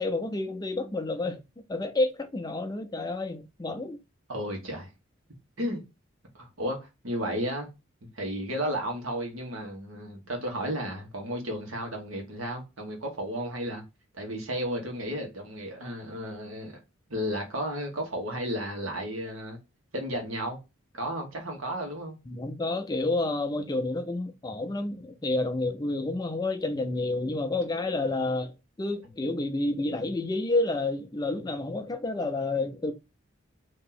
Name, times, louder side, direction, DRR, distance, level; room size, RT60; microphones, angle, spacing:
voice 1, 0.0-1.4 1.7-4.0 22.3-28.5 28.8-32.9, left 2 dB, 20° left, 0.4 m, -29 dB
voice 2, 4.3-4.9 5.6-5.8 6.3-7.7 8.1-13.8 14.1-16.8 17.1-19.6 19.9-20.6 20.9-22.2, equal, 85° right, 1.4 m, -33 dB
2.9 x 2.8 x 3.8 m
head